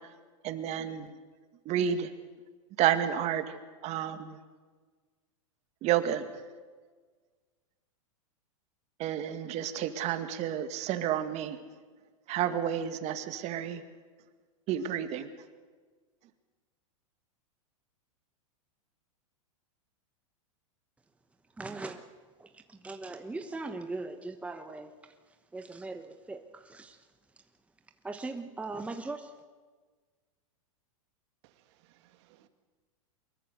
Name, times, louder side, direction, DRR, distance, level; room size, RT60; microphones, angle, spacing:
voice 1, 0.4-1.2 1.7-2.1 2.8-3.6 3.8-4.4 5.8-6.3 9.0-11.6 12.3-13.8 14.7-15.3, right 10 dB, 40° right, 9 dB, 2.1 m, -30 dB
voice 2, 21.6-22.0 22.4-27.1 28.0-29.4, right 3 dB, 5° right, 6 dB, 1.1 m, -40 dB
voice 3, 31.4-32.5, right 13 dB, 55° right, 9 dB, 2.1 m, -64 dB
24.0 x 22.0 x 6.7 m, 1.5 s
hypercardioid pair, 115°, 17 cm